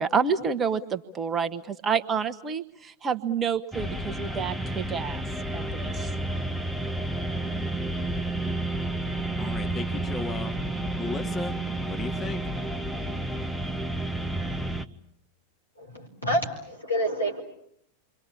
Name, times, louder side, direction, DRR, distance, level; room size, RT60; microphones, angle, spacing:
voice 1, 0.0-5.2 5.5-6.1, right 6 dB, 20° right, 11 dB, 1.3 m, -28 dB
sound 1, 3.7-14.9, right 1 dB, ahead, 1.1 m, -31 dB
voice 2, 9.4-10.6 10.9-11.6 11.8-12.4, left 3 dB, 15° left, 4 dB, 2.1 m, -35 dB
voice 3, 15.8-16.4 16.7-17.4, equal, 85° left, 2 dB, 5.0 m, -27 dB
28.5 x 24.0 x 8.6 m, 0.69 s
figure-of-eight pair, 90°, 0 cm